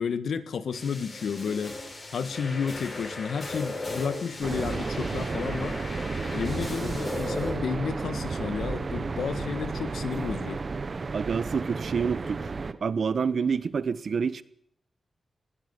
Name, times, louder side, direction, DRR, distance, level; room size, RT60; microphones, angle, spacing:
voice 1, 0.0-1.8 2.1-5.8 6.3-10.6, left 6 dB, 90° left, 1.6 m, -31 dB
sound 1, 0.7-7.5, left 2 dB, 35° left, 7.9 m, -37 dB
sound 2, 4.4-12.7, right 4 dB, 35° right, 1.3 m, -32 dB
voice 2, 11.1-12.5 12.8-14.4, right 6 dB, 55° right, 1.1 m, -27 dB
20.5 x 16.5 x 9.7 m
wide cardioid pair, 155°, 0 cm